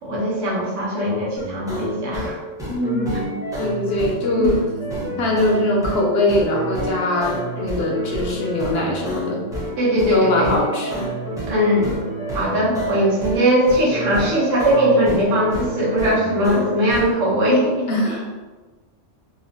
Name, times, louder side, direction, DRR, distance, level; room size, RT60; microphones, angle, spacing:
voice 1, 0.0-2.4 4.4-4.5 9.8-10.5 11.5-12.0 12.3-18.3, equal, 85° right, -5 dB, 1.2 m, -20 dB
sound 1, 1.3-17.1, right 1 dB, 5° right, 0.4 m, -29 dB
voice 2, 2.7-4.6 5.2-9.4 10.1-11.1 17.9-18.3, left 1 dB, 65° left, -2 dB, 0.7 m, -22 dB
2.9 x 2.1 x 2.6 m, 1.3 s
omnidirectional pair, 1.3 m